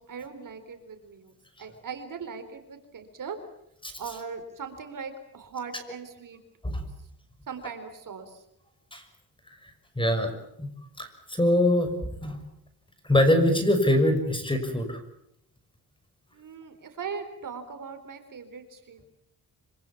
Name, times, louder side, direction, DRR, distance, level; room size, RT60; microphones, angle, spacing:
voice 1, 0.0-1.3 1.6-3.4 4.0-6.4 7.5-8.4 16.3-19.1, right 6 dB, 55° right, 8 dB, 4.1 m, -39 dB
voice 2, 10.0-10.3 10.6-10.7 11.0-12.4 13.0-15.0, left 1 dB, 15° left, 8 dB, 5.9 m, -23 dB
26.0 x 25.5 x 7.3 m, 0.78 s
cardioid pair, 105°, 38 cm